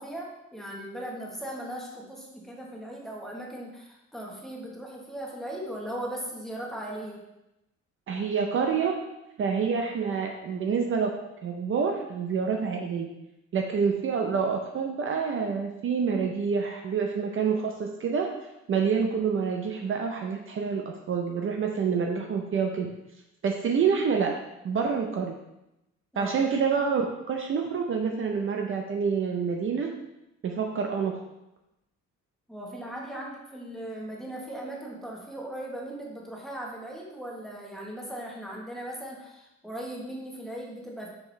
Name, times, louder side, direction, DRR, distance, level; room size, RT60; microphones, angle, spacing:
voice 1, 0.0-7.2 26.1-26.4 32.5-41.1, right 1 dB, ahead, -3 dB, 1.1 m, -38 dB
voice 2, 8.1-9.0 9.4-11.1 11.4-13.1 13.5-18.3 18.7-22.9 23.4-24.4 24.6-25.4 26.2-29.9 30.4-31.2, right 6 dB, 45° right, 2 dB, 0.6 m, -27 dB
6.0 x 5.8 x 3.2 m, 0.91 s
cardioid pair, 160°, 29 cm